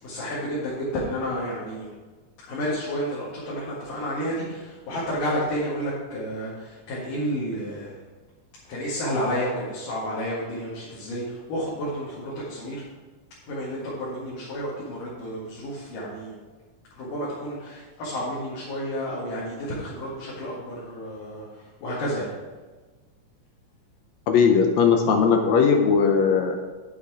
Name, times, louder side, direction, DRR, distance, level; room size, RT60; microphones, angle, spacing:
voice 1, 0.0-1.9 2.5-8.0 8.6-12.8 13.5-16.3 16.9-22.3, equal, 90° left, -7 dB, 3.6 m, -31 dB
voice 2, 24.3-26.6, left 6 dB, 70° left, 4 dB, 1.8 m, -19 dB
9.3 x 8.2 x 4.8 m, 1.3 s
omnidirectional pair, 3.7 m